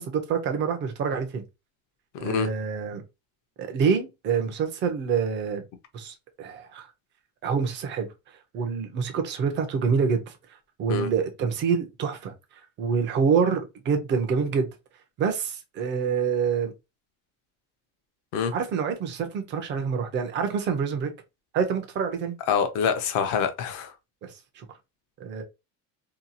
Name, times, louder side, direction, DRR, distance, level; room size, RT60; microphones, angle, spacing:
voice 1, 0.0-1.4 2.2-3.0 3.6-5.6 5.9-6.9 7.4-8.1 8.5-10.3 10.8-12.3 12.8-14.7 15.2-16.7 18.5-21.1 21.5-22.4 24.2-24.7 25.2-25.4, right 6 dB, 30° right, 0.5 m, -26 dB
voice 2, 22.5-23.9, left 7 dB, 55° left, 0.6 m, -25 dB
2.8 x 2.2 x 2.5 m
cardioid pair, 175°, 39 cm